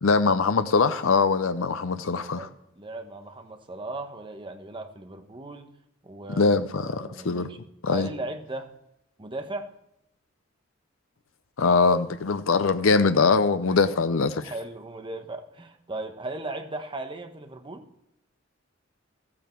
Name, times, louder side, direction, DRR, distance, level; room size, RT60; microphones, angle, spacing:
voice 1, 0.0-2.5 6.3-7.5 7.8-8.1 11.6-14.4, left 4 dB, 85° left, 0.7 m, -22 dB
voice 2, 2.4-5.7 6.0-7.6 7.8-8.7 9.2-9.7 13.7-13.8 14.4-17.9, right 2 dB, 25° right, 1.0 m, -37 dB
14.5 x 8.7 x 4.5 m
head